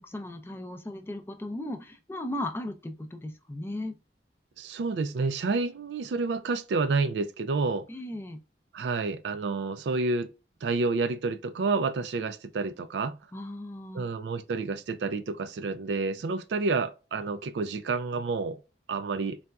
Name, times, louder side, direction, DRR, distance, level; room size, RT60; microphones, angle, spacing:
voice 1, 0.0-3.9 7.9-8.4 13.3-14.1, left 1 dB, 15° left, 0.4 m, -36 dB
voice 2, 4.6-7.9 8.7-10.3 10.6-13.2 13.9-18.6 18.9-19.4, right 3 dB, 70° right, 0.4 m, -29 dB
4.0 x 2.3 x 2.2 m
head